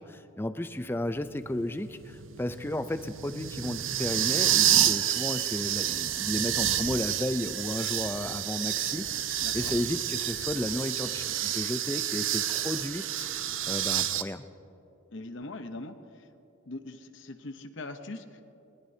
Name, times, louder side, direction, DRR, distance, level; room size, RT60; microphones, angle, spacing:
voice 1, 0.0-13.3 13.7-14.4, left 1 dB, 10° left, 11 dB, 0.4 m, -33 dB
sound 1, 1.1-14.2, right 11 dB, 70° right, 0.7 m, -29 dB
voice 2, 9.4-9.7 15.1-16.0 16.7-18.4, left 2 dB, 65° left, 8 dB, 0.8 m, -41 dB
20.0 x 19.5 x 2.8 m, 2.9 s
head